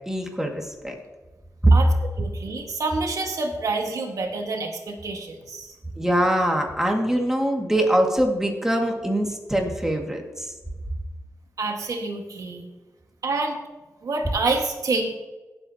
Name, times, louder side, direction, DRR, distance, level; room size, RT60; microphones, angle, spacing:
voice 1, 0.1-0.9 1.6-1.7 6.0-10.5, right 1 dB, 10° right, 1 dB, 2.2 m, -23 dB
voice 2, 2.2-5.8 11.6-12.6 13.2-13.6 14.0-15.1, right 3 dB, 75° right, 2 dB, 1.8 m, -27 dB
18.0 x 7.8 x 3.0 m, 1.2 s
wide cardioid pair, 80°, 6 cm